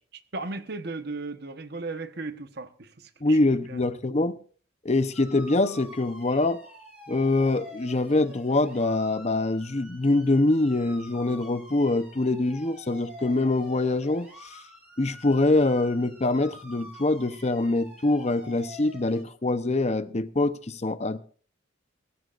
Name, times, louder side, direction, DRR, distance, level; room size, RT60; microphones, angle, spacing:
voice 1, 0.1-3.4 3.7-3.8 7.1-7.2, right 3 dB, 55° right, 1.2 m, -36 dB
voice 2, 3.2-4.4 4.8-6.6 7.1-14.6 15.0-21.2, left 2 dB, 35° left, 0.8 m, -24 dB
sound 1, 5.1-19.2, left 1 dB, 5° right, 7.2 m, -47 dB
23.0 x 14.0 x 2.5 m
head